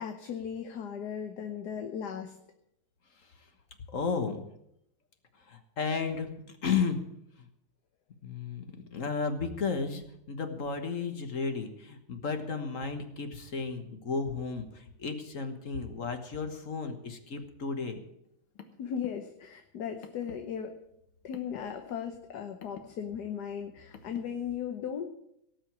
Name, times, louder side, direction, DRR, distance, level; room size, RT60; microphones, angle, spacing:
voice 1, 0.0-2.4 18.8-20.8 21.2-25.1, left 8 dB, 60° left, 5 dB, 1.4 m, -37 dB
voice 2, 3.9-4.4 5.5-7.0 8.2-8.6 8.9-18.0, left 5 dB, 45° left, 7 dB, 1.5 m, -33 dB
Car, 18.2-24.5, left 6 dB, 85° left, 2.1 m, -53 dB
18.0 x 6.3 x 8.7 m, 0.78 s
omnidirectional pair, 2.2 m